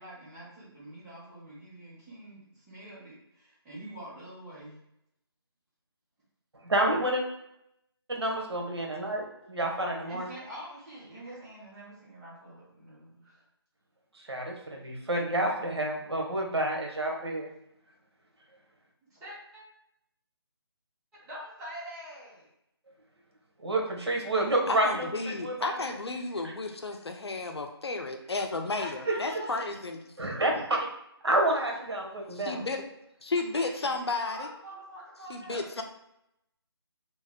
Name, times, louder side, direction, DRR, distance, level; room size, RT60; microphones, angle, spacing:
voice 1, 0.0-3.1 3.6-4.8 10.1-13.1 19.2-19.6 21.3-22.4 28.8-29.6 33.5-33.8 34.2-35.7, right 1 dB, 5° right, -9 dB, 0.5 m, -45 dB
voice 2, 6.6-7.2 8.1-10.3 14.3-17.5 23.6-26.0 29.1-29.2 30.2-30.8 31.2-32.6, right 1 dB, 75° right, 1 dB, 1.0 m, -29 dB
voice 3, 24.7-30.0 32.3-32.9 33.2-34.5 35.3-35.8, left 3 dB, 75° left, 4 dB, 0.6 m, -33 dB
2.9 x 2.1 x 3.5 m, 0.80 s
figure-of-eight pair, 160°, 14 cm